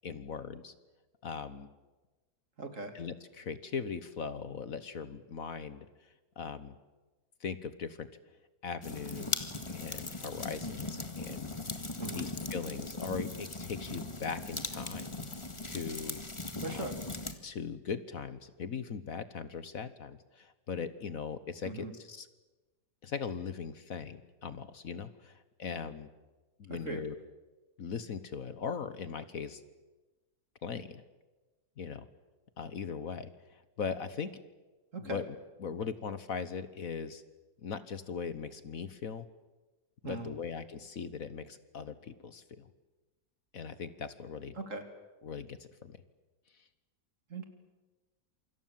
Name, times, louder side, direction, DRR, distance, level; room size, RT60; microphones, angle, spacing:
voice 1, 0.0-0.7 1.2-1.7 2.9-5.9 6.4-6.8 7.4-8.1 8.6-15.1 15.7-16.2 16.7-16.9 17.4-22.3 23.0-26.1 26.6-27.2 27.8-29.6 30.6-31.0 31.8-32.1 32.6-34.3 35.0-35.3 35.6-37.2 37.6-39.3 40.0-42.7 43.5-44.6 45.2-46.0, left 6 dB, 60° left, 13 dB, 1.5 m, -40 dB
voice 2, 2.6-2.9 12.0-12.3 16.6-16.9 21.6-21.9 26.7-27.0 34.9-35.2 40.0-40.3 44.6-44.8 47.3-47.4, right 3 dB, 50° right, 6 dB, 3.2 m, -39 dB
sound 1, 8.8-17.3, left 2 dB, 15° left, 1.9 m, -39 dB
27.5 x 25.5 x 7.5 m, 1.2 s
omnidirectional pair, 1.8 m